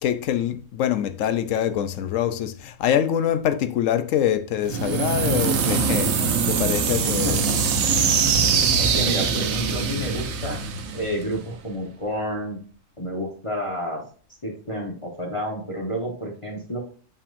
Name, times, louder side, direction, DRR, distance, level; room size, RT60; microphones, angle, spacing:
voice 1, 0.0-6.2 6.5-7.5, left 10 dB, 85° left, 1.0 m, -24 dB
sound 1, 4.6-11.5, right 6 dB, 65° right, 1.0 m, -23 dB
voice 2, 7.0-7.6 8.8-10.6 10.9-12.6 13.0-14.0 14.4-16.8, equal, 25° left, 1.3 m, -30 dB
6.9 x 5.8 x 2.6 m
omnidirectional pair, 1.3 m